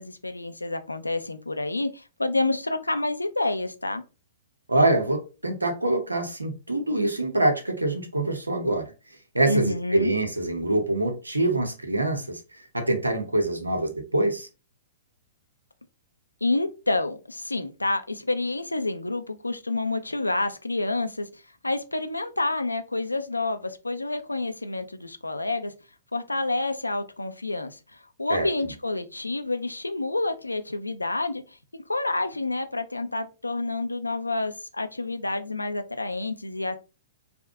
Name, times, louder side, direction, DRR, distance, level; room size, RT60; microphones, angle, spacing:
voice 1, 0.0-4.0 9.5-10.1 16.4-25.7 26.1-36.8, left 2 dB, 85° left, 0.4 m, -29 dB
voice 2, 4.7-8.9 9.3-14.5 28.3-28.5, right 2 dB, 85° right, 0.9 m, -25 dB
3.5 x 2.2 x 3.5 m
figure-of-eight pair, 110°, 0 cm